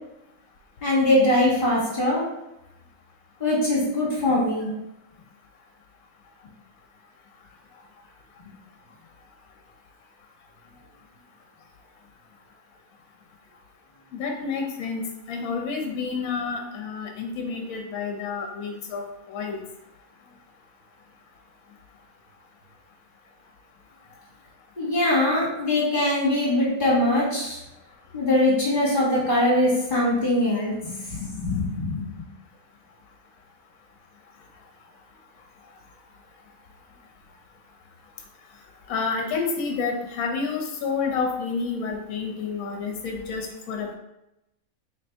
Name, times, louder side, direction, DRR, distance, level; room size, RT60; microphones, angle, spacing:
voice 1, 0.8-2.2 3.4-4.7 24.8-27.6 28.1-32.0, left 1 dB, 35° left, -7 dB, 1.5 m, -22 dB
voice 2, 14.1-15.0 15.3-19.6 38.9-44.0, left 5 dB, 70° left, 1 dB, 1.1 m, -29 dB
3.4 x 2.6 x 4.3 m, 0.89 s
omnidirectional pair, 1.6 m